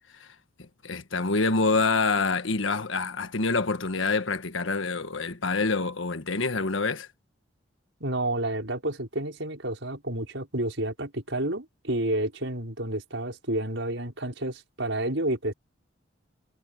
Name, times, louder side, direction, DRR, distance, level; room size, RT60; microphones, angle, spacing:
voice 1, 0.6-7.1, left 3 dB, 90° left, 1.5 m, -26 dB
voice 2, 8.0-15.5, right 1 dB, 75° right, 5.9 m, -30 dB
head